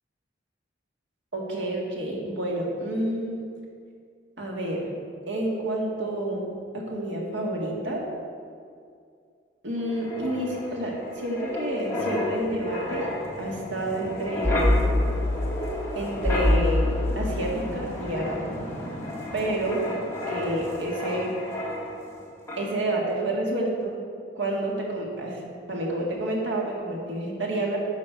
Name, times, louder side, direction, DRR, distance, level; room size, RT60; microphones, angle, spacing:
voice 1, 1.3-3.5 4.4-4.9 5.3-8.0 9.6-13.1 13.4-14.8 16.0-16.9 17.2-18.6 19.3-19.9 20.3-21.3 22.6-24.0 24.3-27.8, right 1 dB, 80° right, -2 dB, 1.9 m, -29 dB
Wind, 9.8-22.2 22.5-22.7, left 1 dB, 15° left, 1.7 m, -28 dB
9.9 x 5.3 x 6.7 m, 2.2 s
head